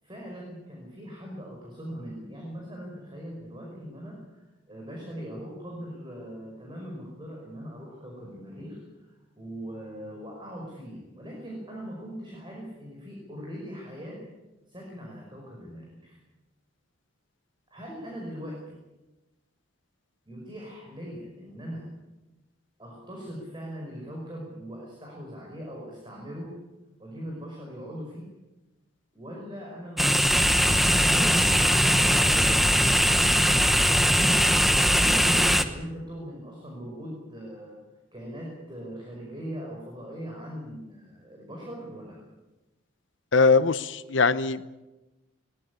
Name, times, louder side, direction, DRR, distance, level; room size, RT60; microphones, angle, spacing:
voice 1, 0.0-14.2 14.7-16.2 17.7-18.8 20.3-21.9 22.8-26.5 27.0-28.3 29.1-33.4 34.9-37.8 38.1-42.2, equal, 25° right, -2 dB, 5.5 m, -40 dB
sound 1, 30.0-35.6, equal, ahead, 1.1 m, -21 dB
voice 2, 43.3-44.7, left 4 dB, 60° left, 14 dB, 0.9 m, -21 dB
22.0 x 19.0 x 8.3 m, 1.1 s
head